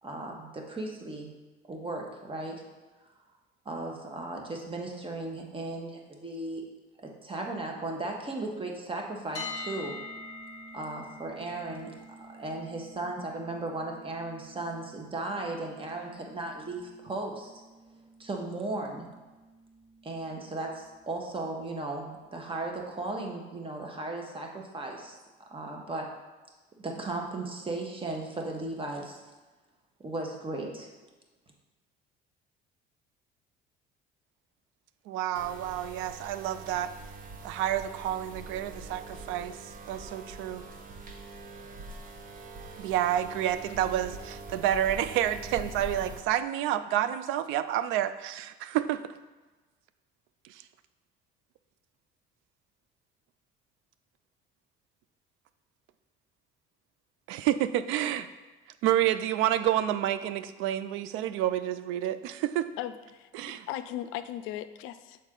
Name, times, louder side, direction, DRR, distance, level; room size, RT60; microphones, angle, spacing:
voice 1, 0.0-1.3 1.7-2.6 3.6-6.6 7.0-10.0 10.7-17.5 18.2-19.0 20.0-25.2 25.5-26.1 26.8-29.2 30.0-30.9, right 2 dB, 25° right, 1 dB, 1.2 m, -36 dB
sound 1, 9.3-21.3, left 2 dB, 30° left, 1.5 m, -47 dB
voice 2, 35.1-36.9 37.4-39.6 39.9-40.6 42.8-49.1 57.3-58.3 58.8-62.7 63.3-63.7, right 11 dB, 75° right, 12 dB, 0.4 m, -29 dB
sound 2, 35.4-46.2, right 3 dB, 40° right, 0.8 m, -44 dB
voice 3, 62.8-63.3 63.7-65.2, left 12 dB, 80° left, 12 dB, 0.4 m, -37 dB
6.3 x 4.2 x 3.8 m, 1.2 s
supercardioid pair, 80°, 21 cm